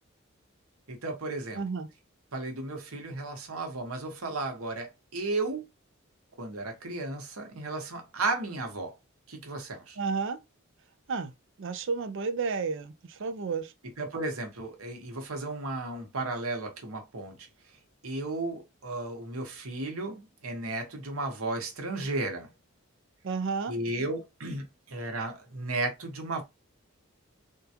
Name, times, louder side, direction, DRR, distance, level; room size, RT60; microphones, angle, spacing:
voice 1, 0.9-1.6 2.3-5.6 6.4-8.9 9.3-10.0 14.0-17.4 18.0-22.5 23.7-26.4, right 2 dB, 90° right, 1.1 m, -34 dB
voice 2, 1.5-1.9 10.0-10.4 11.1-11.3 11.6-13.7 23.2-23.7, right 5 dB, 65° right, 0.5 m, -31 dB
3.7 x 2.3 x 2.8 m
head